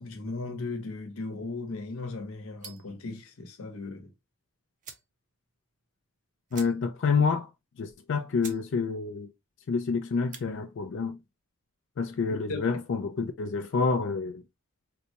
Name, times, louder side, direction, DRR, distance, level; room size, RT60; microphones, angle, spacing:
voice 1, 0.0-4.1 12.5-12.6, left 3 dB, 75° left, 1.0 m, -37 dB
sound 1, 2.6-3.0 4.3-4.4 4.8-5.1 5.5-5.6 5.8-6.0 6.5-7.1 7.4-7.5 8.0-8.1 8.4-8.7 9.0-9.4 10.1-10.5, right 6 dB, 35° right, 0.5 m, -46 dB
voice 2, 6.5-7.5 7.8-9.3 9.7-11.2 12.0-14.4, left 5 dB, 55° left, 0.4 m, -28 dB
4.0 x 2.2 x 2.7 m
head